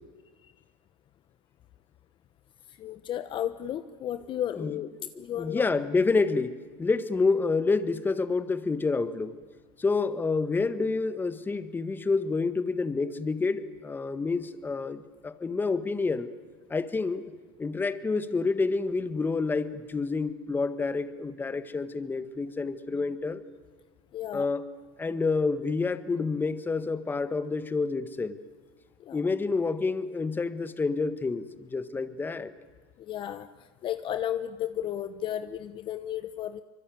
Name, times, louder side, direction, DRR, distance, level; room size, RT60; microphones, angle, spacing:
voice 1, 2.8-5.7 24.1-24.5 29.0-29.2 33.0-33.5 33.8-36.6, left 11 dB, 40° left, 12 dB, 1.0 m, -33 dB
voice 2, 4.6-5.1 5.4-9.3 9.8-16.3 16.7-17.2 17.6-23.4 24.3-24.7 25.0-28.4 29.1-32.5, left 4 dB, 15° left, 12 dB, 1.5 m, -28 dB
25.0 x 23.0 x 9.2 m, 1.5 s
supercardioid pair, 115°, 12 cm